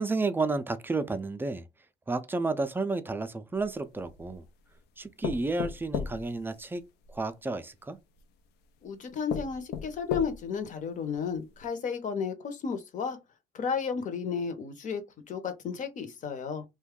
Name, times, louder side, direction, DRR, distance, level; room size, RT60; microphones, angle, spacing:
voice 1, 0.0-1.6 2.1-4.4 5.0-6.8 7.1-8.0, right 3 dB, 10° right, 0.4 m, -31 dB
sound 1, 3.6-4.5 5.2-7.2 8.2-8.3 8.8-8.9 9.3-10.6 11.1-11.2 11.6-11.7, left 7 dB, 80° left, 0.5 m, -36 dB
voice 2, 8.8-13.2 13.5-15.0 15.3-16.6, left 6 dB, 50° left, 0.8 m, -33 dB
2.6 x 2.3 x 3.6 m
cardioid pair, 110°, 17 cm